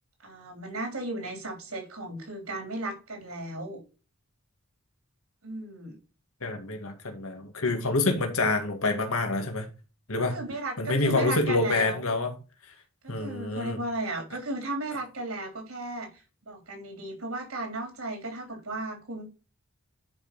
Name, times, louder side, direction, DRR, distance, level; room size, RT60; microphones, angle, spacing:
voice 1, 0.2-3.8 5.4-6.0 10.2-12.1 13.0-16.1 16.4-19.2, right 2 dB, 80° right, 3.6 m, -35 dB
voice 2, 6.4-9.7 10.1-10.3 10.8-12.3 13.1-13.8, left 3 dB, 75° left, 2.0 m, -27 dB
10.0 x 5.3 x 4.0 m
head